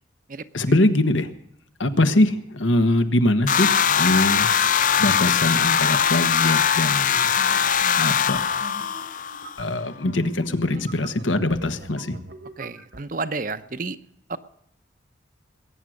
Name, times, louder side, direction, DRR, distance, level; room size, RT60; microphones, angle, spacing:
voice 1, 0.5-1.3 1.8-7.3 8.0-8.4 9.6-12.2, left 1 dB, 85° left, 9 dB, 1.4 m, -22 dB
sound 1, 3.5-9.6, left 7 dB, 45° left, 0.5 m, -21 dB
sound 2, 6.4-13.0, right 2 dB, 65° right, 1.4 m, -44 dB
voice 2, 12.6-14.0 14.3-14.4, right 3 dB, 45° right, 12 dB, 0.8 m, -31 dB
21.5 x 9.4 x 6.5 m, 0.76 s
head